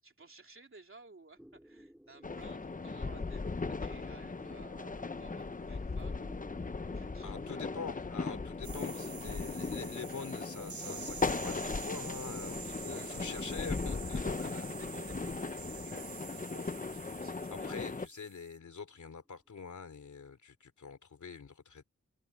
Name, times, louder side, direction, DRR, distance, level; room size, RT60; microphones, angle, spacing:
voice 1, 0.0-6.3 6.7-7.7 12.8-13.6 14.2-17.8, right 3 dB, 45° right, 3.3 m, -56 dB
sound 1, 1.4-20.1, equal, 5° right, 3.9 m, -59 dB
sound 2, 2.2-18.1, left 4 dB, 25° left, 0.8 m, -38 dB
voice 2, 7.2-14.7 17.5-21.8, left 5 dB, 75° left, 3.0 m, -45 dB
sound 3, 8.6-18.5, right 7 dB, 75° right, 0.9 m, -48 dB
wide cardioid pair, 100°, 30 cm